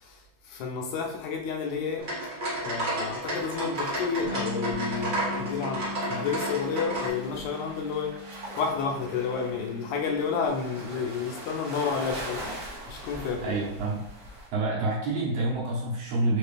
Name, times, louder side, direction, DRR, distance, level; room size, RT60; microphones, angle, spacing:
voice 1, 0.0-2.1 2.6-8.2 8.6-12.4 12.9-13.6, left 5 dB, 90° left, 2 dB, 2.1 m, -31 dB
sound 1, 2.0-7.1, right 1 dB, 35° right, 1.1 m, -32 dB
sound 2, 2.4-14.5, right 1 dB, 90° right, 0.7 m, -43 dB
Bass guitar, 4.2-10.5, left 3 dB, 40° left, 1.9 m, -40 dB
voice 2, 13.4-14.0 14.5-16.4, right 2 dB, 65° right, -5 dB, 1.9 m, -27 dB
5.0 x 3.0 x 3.3 m, 0.82 s
omnidirectional pair, 3.3 m